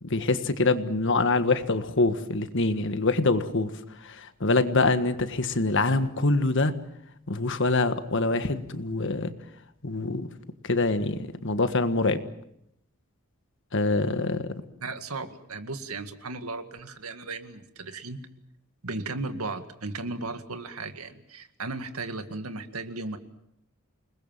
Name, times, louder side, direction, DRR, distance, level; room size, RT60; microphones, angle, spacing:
voice 1, 0.0-3.7 4.0-6.7 7.3-9.3 9.8-10.3 10.6-12.2 13.7-14.5, left 3 dB, 60° left, 10 dB, 1.6 m, -25 dB
voice 2, 14.8-18.3 18.8-23.2, right 3 dB, 85° right, 8 dB, 2.0 m, -36 dB
29.0 x 20.5 x 7.5 m, 0.75 s
head